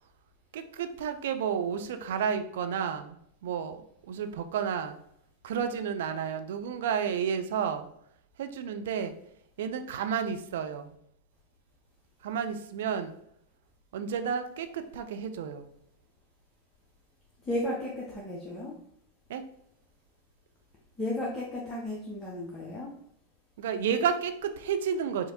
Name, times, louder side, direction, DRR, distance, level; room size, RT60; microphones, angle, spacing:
voice 1, 0.5-3.8 4.1-5.0 5.4-7.9 8.4-9.1 9.6-10.9 12.2-13.1 13.9-15.6 19.3-19.4 23.6-25.3, right 7 dB, 55° right, 8 dB, 0.4 m, -31 dB
voice 2, 17.4-18.7 21.0-22.9, left 1 dB, 20° left, -3 dB, 0.7 m, -34 dB
4.8 x 2.6 x 2.8 m, 0.72 s
figure-of-eight pair, 90°, 0 cm